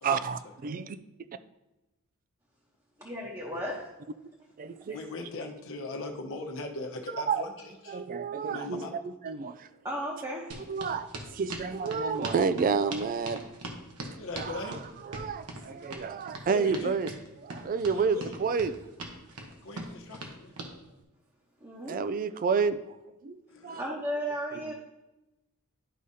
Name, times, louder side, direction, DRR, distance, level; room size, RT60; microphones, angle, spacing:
voice 1, 0.0-1.0 4.6-5.0 7.3-7.4 7.9-8.8 9.2-9.7 10.7-13.4 14.4-14.8 15.1-17.1 17.4-18.7 21.9-22.8 23.2-23.4 23.6-23.8 24.7-24.8, right 5 dB, 40° right, 12 dB, 0.3 m, -30 dB
voice 2, 3.0-3.8 4.9-5.0 9.8-10.6 21.6-22.0 23.8-24.7, equal, 15° right, -4 dB, 1.0 m, -34 dB
voice 3, 4.9-8.0 8.5-9.0 9.3-9.5 14.2-14.8 16.5-17.0 17.9-18.3 19.6-20.5 23.5-23.8, left 2 dB, 60° left, 2 dB, 1.0 m, -39 dB
sound 1, 10.5-20.7, right 2 dB, 90° right, 1.1 m, -41 dB
11.5 x 4.9 x 2.8 m, 1.0 s
head